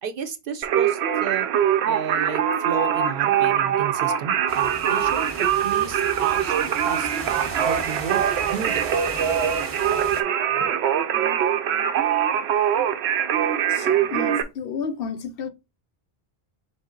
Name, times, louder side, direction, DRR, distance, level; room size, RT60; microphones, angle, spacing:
voice 1, 0.0-1.5 1.9-6.5 6.8-7.1 7.6-8.9, right 7 dB, 60° right, 0.7 m, -32 dB
Singing, 0.6-14.4, right 9 dB, 90° right, 0.9 m, -23 dB
sound 1, 4.5-10.2, right 2 dB, 20° right, 0.8 m, -38 dB
voice 2, 13.7-15.5, left 6 dB, 70° left, 0.7 m, -32 dB
4.1 x 3.4 x 3.7 m
omnidirectional pair, 1.1 m